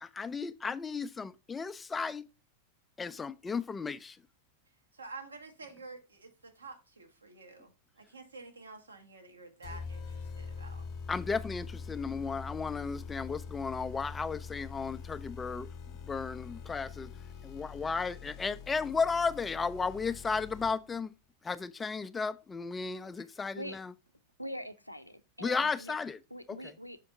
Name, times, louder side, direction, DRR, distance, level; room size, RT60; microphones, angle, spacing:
voice 1, 0.0-2.3 3.0-4.2 11.1-15.7 16.0-17.1 17.4-21.1 21.4-23.9 25.4-26.2 26.5-26.7, left 5 dB, 15° left, 0.3 m, -34 dB
voice 2, 4.9-10.8, right 3 dB, 75° right, 1.0 m, -49 dB
sound 1, 9.6-21.0, left 5 dB, 35° left, 0.9 m, -44 dB
voice 3, 24.4-25.9 26.3-27.0, equal, 90° left, 0.4 m, -43 dB
5.8 x 4.3 x 3.8 m
figure-of-eight pair, 90°, 0 cm